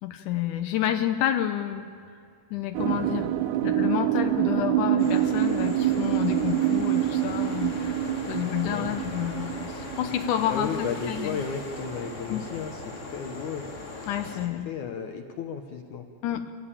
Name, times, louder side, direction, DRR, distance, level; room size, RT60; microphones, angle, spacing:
voice 1, 0.0-1.9 2.5-3.3 3.6-8.0 8.3-11.4 12.3-12.5 14.1-14.7 16.2-16.5, left 11 dB, 90° left, 7 dB, 1.7 m, -29 dB
sound 1, 2.7-12.1, right 13 dB, 80° right, 2.6 m, -27 dB
sound 2, 5.0-14.5, left 2 dB, 40° left, 1.0 m, -39 dB
voice 2, 10.5-12.8 13.1-13.7 14.2-14.4 14.7-16.1, left 6 dB, 70° left, 5 dB, 1.8 m, -34 dB
25.5 x 16.0 x 8.9 m, 2.3 s
omnidirectional pair, 5.0 m